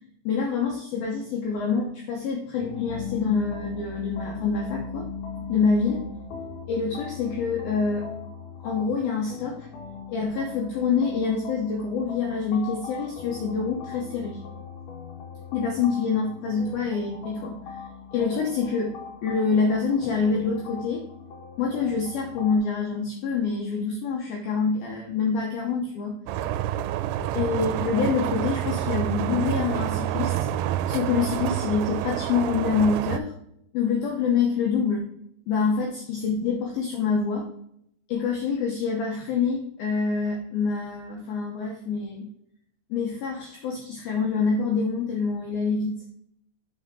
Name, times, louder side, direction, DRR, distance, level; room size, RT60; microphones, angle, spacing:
voice 1, 0.3-5.1 5.5-6.0 6.7-8.2 8.6-9.7 10.1-14.4 15.5-17.6 18.1-19.0 19.2-21.0 21.6-26.2 27.4-30.3 30.9-33.3 33.7-35.1 35.5-37.5 38.1-42.3 42.9-45.9, left 5 dB, 85° left, 0 dB, 2.1 m, -26 dB
sound 1, 2.6-22.6, left 5 dB, 70° left, 2.0 m, -39 dB
sound 2, 26.3-33.2, right 11 dB, 90° right, 3.1 m, -28 dB
6.9 x 5.9 x 3.7 m, 0.72 s
omnidirectional pair, 5.7 m